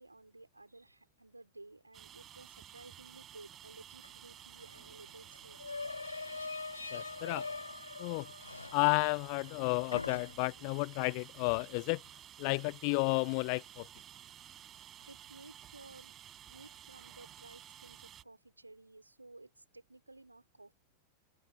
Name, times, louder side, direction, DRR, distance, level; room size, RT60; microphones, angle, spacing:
voice 1, 0.0-5.7 15.1-16.2 16.5-20.7, right 2 dB, 85° right, 3.5 m, -55 dB
sound 1, 1.9-18.2, right 11 dB, 30° right, 4.8 m, -53 dB
sound 2, 4.0-4.1 4.4-9.6 9.9-10.7, left 3 dB, 80° left, 1.2 m, -43 dB
voice 2, 6.9-7.5 8.0-8.3 8.7-12.0 12.4-13.9, left 40 dB or more, 45° left, 0.4 m, -32 dB
figure-of-eight pair, 90°, 0 cm